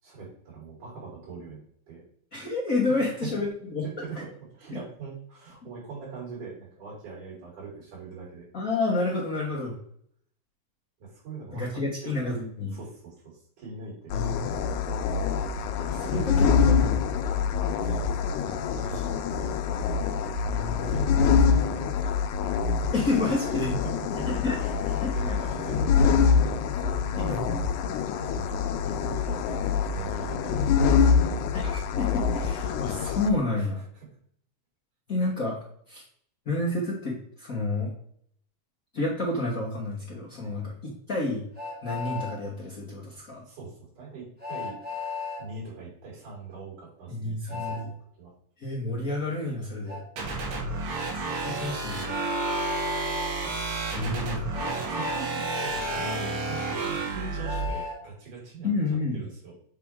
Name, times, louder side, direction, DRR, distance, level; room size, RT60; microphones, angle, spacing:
voice 1, 0.0-2.0 2.9-3.3 3.8-8.5 11.0-12.4 12.7-14.2 15.8-16.6 17.5-18.1 18.5-19.5 20.0-20.4 20.8-22.2 22.8-22.9 23.4-24.2 24.6-27.3 28.2-31.1 33.6-34.1 40.4-40.7 43.5-44.8 45.4-47.8 48.2-48.3 54.6-59.6, right 4 dB, 90° right, -4 dB, 4.7 m, -42 dB
voice 2, 2.3-3.8 8.5-9.8 11.5-12.8 14.1-14.5 16.1-16.9 20.5-20.9 22.9-23.7 24.3-24.6 25.0-25.4 27.2-27.6 31.5-33.8 35.1-35.6 35.9-36.0 36.4-37.9 38.9-41.4 41.8-43.4 47.1-47.9 48.6-50.0 51.2-52.0 53.9-54.4 58.6-59.2, left 2 dB, 45° left, -6 dB, 1.1 m, -29 dB
sound 1, 14.1-33.3, left 6 dB, 85° left, 2.0 m, -25 dB
Train, 41.5-42.3 44.4-45.4 47.5-47.8 49.9-50.0 52.1-53.3 54.5-56.2 57.4-58.0, left 5 dB, 10° right, 0.4 m, -35 dB
sound 2, 50.2-57.7, right 3 dB, 70° right, 2.8 m, -31 dB
7.6 x 4.5 x 3.7 m, 0.64 s
omnidirectional pair, 3.3 m